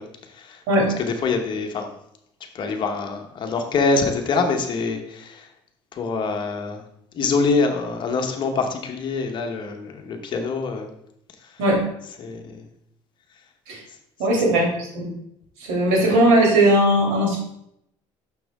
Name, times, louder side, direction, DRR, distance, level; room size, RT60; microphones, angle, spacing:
voice 1, 0.0-0.6 1.0-1.9 2.5-5.5 5.9-6.8 7.1-10.9 11.4-11.6 12.2-12.6 14.3-14.4, left 4 dB, 45° left, 4 dB, 1.1 m, -25 dB
voice 2, 14.2-14.7 14.9-15.1 15.6-17.4, right 1 dB, 90° right, -1 dB, 2.8 m, -18 dB
6.3 x 6.0 x 3.5 m, 0.75 s
cardioid pair, 125°, 11 cm